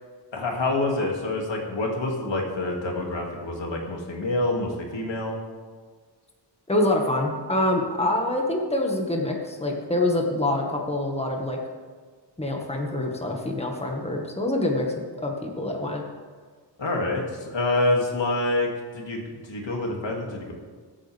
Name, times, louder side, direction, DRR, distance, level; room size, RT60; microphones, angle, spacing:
voice 1, 0.3-5.4 16.8-18.7 18.9-19.2 19.5-20.5, left 2 dB, 75° left, 0 dB, 2.6 m, -26 dB
voice 2, 6.7-11.6 12.4-14.9 15.2-16.0, left 1 dB, 15° left, 0 dB, 1.7 m, -25 dB
23.0 x 8.6 x 3.5 m, 1.6 s
wide cardioid pair, 125°, 44 cm